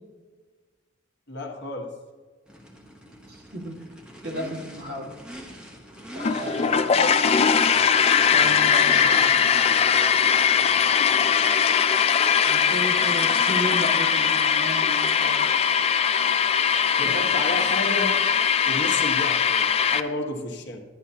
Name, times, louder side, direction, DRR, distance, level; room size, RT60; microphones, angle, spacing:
voice 1, 1.3-1.9 17.0-18.1 18.7-20.8, left 2 dB, 60° left, 2 dB, 1.3 m, -31 dB
Race car auto racing / Idling / Accelerating revving vroom, 2.5-11.9, equal, 5° right, 0.9 m, -43 dB
voice 2, 3.3-3.8 4.2-5.2 6.1-7.1 8.3-9.4 12.4-15.4 17.0-17.3, equal, 50° right, -2 dB, 1.8 m, -34 dB
sound 1, 6.2-20.0, left 7 dB, 30° left, 0.3 m, -21 dB
11.5 x 9.8 x 2.8 m, 1.4 s
head